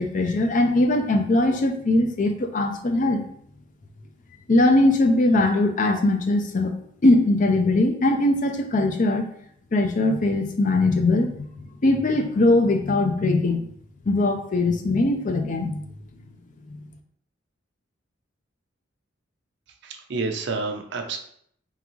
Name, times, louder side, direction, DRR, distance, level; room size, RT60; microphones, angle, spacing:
voice 1, 0.0-3.2 4.5-6.7 7.0-9.2 9.7-11.4 11.8-13.7 14.1-15.8, left 2 dB, 40° left, 6 dB, 0.5 m, -20 dB
voice 2, 19.8-21.2, right 3 dB, 60° right, 4 dB, 0.6 m, -29 dB
3.7 x 3.4 x 3.0 m, 0.65 s
head